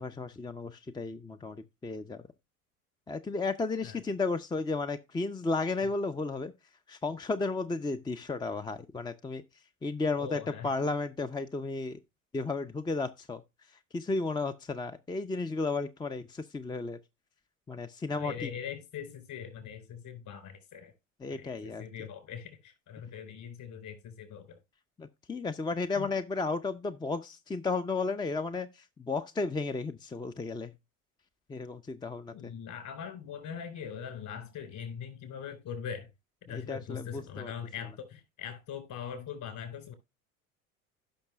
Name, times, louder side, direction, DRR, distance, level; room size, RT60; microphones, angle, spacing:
voice 1, 0.0-2.2 3.1-6.5 6.9-9.4 9.8-12.0 12.3-13.4 13.9-17.0 17.7-18.5 21.2-21.8 25.0-30.7 31.5-32.5 36.5-37.5, left 3 dB, 10° left, 0.5 m, -33 dB
voice 2, 10.2-10.7 18.1-20.9 21.3-24.6 26.0-26.1 32.3-36.1 36.4-39.9, left 7 dB, 50° left, 4.2 m, -41 dB
16.5 x 5.9 x 2.3 m
hypercardioid pair, 70°, 42 cm